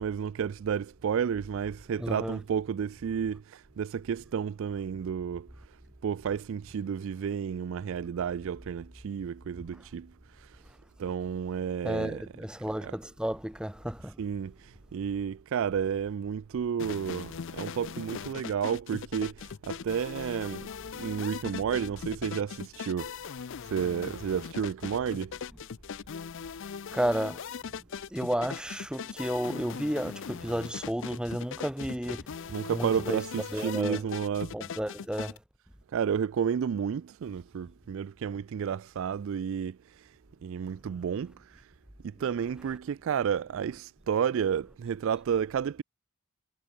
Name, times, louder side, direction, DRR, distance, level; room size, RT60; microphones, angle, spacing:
voice 1, 0.0-5.5 6.0-10.1 11.0-12.2 12.8-12.9 14.2-20.7 20.9-23.1 23.7-25.4 32.5-34.6 35.9-39.8 40.4-41.6 42.0-45.8, right 7 dB, 60° right, 0.3 m, -31 dB
voice 2, 2.0-2.4 9.7-9.8 11.8-14.2 26.9-27.8 28.1-33.2 33.5-34.0 34.5-35.4, equal, 5° right, 0.7 m, -32 dB
sound 1, 16.8-35.4, left 6 dB, 55° left, 0.5 m, -40 dB
head